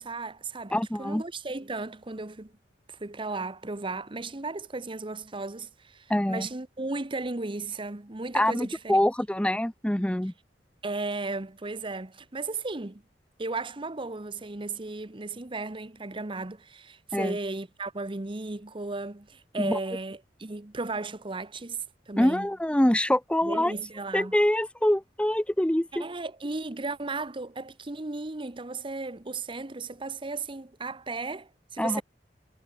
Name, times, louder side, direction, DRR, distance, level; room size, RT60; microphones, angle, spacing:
voice 1, 0.0-2.5 2.9-9.0 10.8-13.0 13.4-22.5 23.4-24.3 26.0-32.0, right 3 dB, 30° right, 1.0 m, -35 dB
voice 2, 0.7-1.2 6.1-6.5 8.3-10.3 17.1-17.4 19.6-19.8 22.2-23.7 24.1-26.0 31.8-32.0, left 1 dB, 5° left, 0.7 m, -25 dB
head